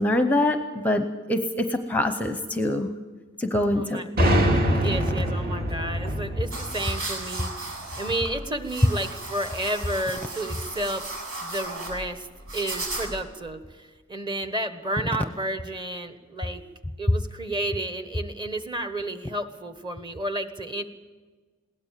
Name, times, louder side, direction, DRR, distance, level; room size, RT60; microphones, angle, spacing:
voice 1, 0.0-2.9 3.4-4.0, left 1 dB, 10° left, 7 dB, 0.8 m, -24 dB
voice 2, 3.7-4.0 4.8-7.7 8.0-11.0 11.4-12.3 12.5-16.6 17.0-20.8, right 1 dB, 20° right, 8 dB, 1.3 m, -31 dB
sound 1, 4.2-7.8, equal, 45° right, 2.6 m, -24 dB
sound 2, 6.5-13.3, right 2 dB, 80° right, 7.6 m, -35 dB
21.5 x 17.5 x 7.5 m, 1.3 s
head